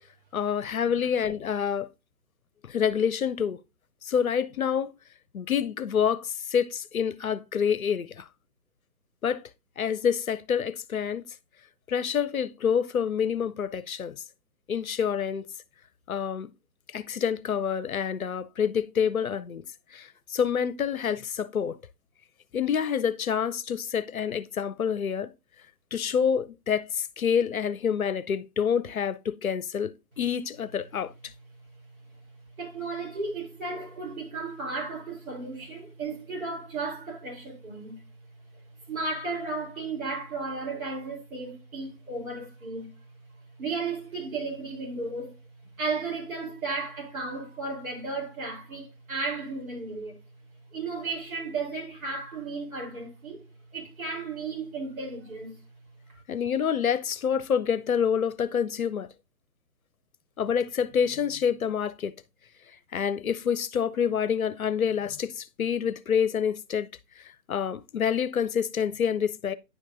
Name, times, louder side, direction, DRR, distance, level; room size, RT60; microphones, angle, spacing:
voice 1, 0.3-1.9 2.6-3.6 4.0-4.9 5.3-8.3 9.2-9.4 9.8-11.2 11.9-14.2 14.7-15.5 16.1-16.5 16.9-19.6 19.9-21.8 22.5-25.3 25.9-31.1 56.3-59.1 60.4-62.1 62.9-66.9 67.2-69.5, left 7 dB, 60° left, 0.7 m, -27 dB
voice 2, 32.6-38.0 38.9-42.9 43.6-45.3 45.8-50.2 50.7-53.4 53.7-55.6 56.1-56.2, right 3 dB, 55° right, 3.5 m, -34 dB
9.8 x 5.2 x 2.5 m
figure-of-eight pair, 140°, 49 cm